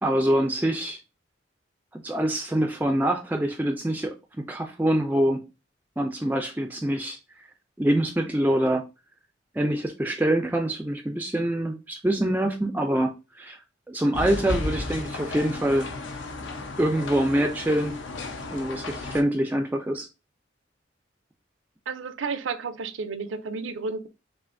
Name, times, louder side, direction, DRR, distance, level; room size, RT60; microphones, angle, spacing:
voice 1, 0.0-1.0 1.9-5.5 6.0-7.2 7.8-8.8 9.5-13.6 13.9-15.9 16.8-17.9 18.5-20.1, right 1 dB, 10° right, 0.3 m, -25 dB
sound 1, 14.1-19.2, left 2 dB, 80° left, 0.7 m, -34 dB
voice 2, 21.9-24.1, right 4 dB, 85° right, 0.5 m, -32 dB
5.5 x 2.5 x 2.6 m
head